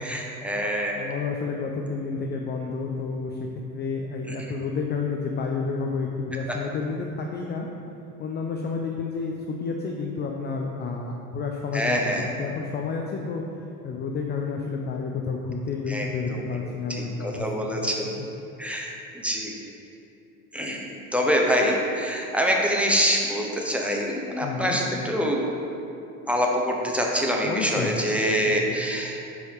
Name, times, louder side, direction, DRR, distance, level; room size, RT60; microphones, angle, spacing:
voice 1, 0.0-1.0 11.7-12.3 15.9-16.4 17.2-18.1 18.6-19.5 20.5-20.9 21.1-25.4 26.3-29.2, equal, 5° right, -1 dB, 0.8 m, -25 dB
voice 2, 0.9-3.5 3.7-7.7 8.2-13.4 13.8-17.8 18.2-18.3 24.4-24.8 27.4-27.9 28.5-28.8, left 4 dB, 25° left, 1 dB, 0.4 m, -30 dB
5.4 x 4.6 x 4.6 m, 2.8 s
hypercardioid pair, 85°, 43 cm